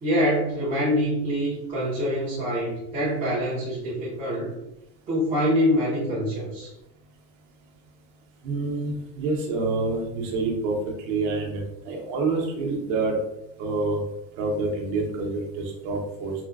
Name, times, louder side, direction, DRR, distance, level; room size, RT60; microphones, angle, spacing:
voice 1, 0.0-4.5 5.1-6.7, equal, 15° right, -10 dB, 0.5 m, -25 dB
voice 2, 8.4-10.7 11.1-13.2 13.6-14.0 14.4-16.3, right 3 dB, 50° right, 1 dB, 0.8 m, -27 dB
4.3 x 2.1 x 2.4 m, 0.88 s
supercardioid pair, 175°, 47 cm